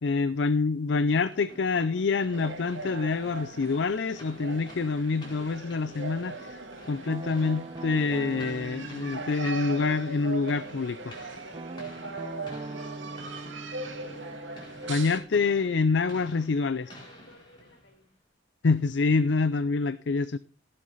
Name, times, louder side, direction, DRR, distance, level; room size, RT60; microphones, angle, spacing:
voice 1, 0.0-6.6 6.9-11.1 14.9-16.9 18.6-20.4, left 4 dB, 65° left, 14 dB, 0.5 m, -26 dB
sound 1, 1.3-18.0, equal, 25° left, 4.3 m, -50 dB
sound 2, 2.3-15.2, right 3 dB, 80° right, 2.3 m, -40 dB
Guitar, 7.1-10.8 11.5-16.3, right 2 dB, 25° right, 0.6 m, -42 dB
voice 2, 13.8-14.6 16.6-18.1, left 2 dB, 85° left, 5 dB, 4.7 m, -56 dB
17.0 x 7.7 x 4.0 m, 0.37 s
head